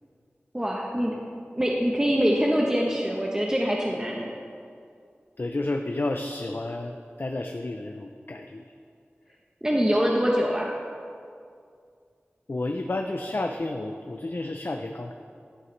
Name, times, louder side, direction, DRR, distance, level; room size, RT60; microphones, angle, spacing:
voice 1, 0.5-1.1 1.5-4.3 9.6-10.7, equal, 15° right, -2 dB, 1.0 m, -24 dB
voice 2, 5.4-8.6 12.5-15.1, left 2 dB, 55° left, 4 dB, 0.5 m, -31 dB
14.0 x 8.6 x 3.2 m, 2.3 s
wide cardioid pair, 55°, 4 cm